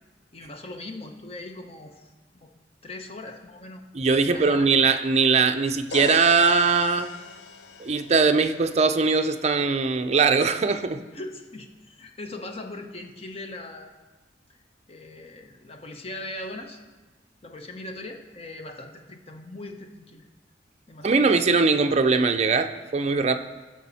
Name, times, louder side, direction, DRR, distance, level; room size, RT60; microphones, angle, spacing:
voice 1, 0.3-2.1 2.4-2.5 2.8-3.8 4.2-4.7 11.1-13.9 14.5-14.6 14.9-16.8 17.4-20.2 20.9-21.5, left 2 dB, 35° left, 4 dB, 0.9 m, -40 dB
voice 2, 3.9-7.1 7.8-11.0 21.0-23.4, right 4 dB, 40° right, 7 dB, 0.5 m, -21 dB
sound 1, 5.9-9.7, left 4 dB, 75° left, 0.7 m, -40 dB
15.0 x 6.2 x 4.1 m, 1.2 s
head